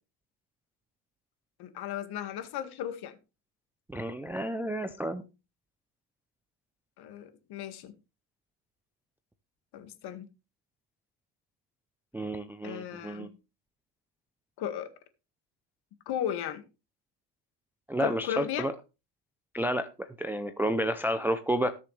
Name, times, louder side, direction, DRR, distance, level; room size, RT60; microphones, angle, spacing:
voice 1, 1.6-3.1 7.0-7.9 9.7-10.3 12.6-13.3 14.6-14.9 16.1-16.6 18.0-18.7, left 10 dB, 50° left, 2.0 m, -35 dB
voice 2, 3.9-5.2 12.1-13.3 17.9-18.7 19.5-21.7, right 1 dB, 5° right, 0.5 m, -31 dB
18.5 x 6.8 x 3.3 m
cardioid pair, 135°, 49 cm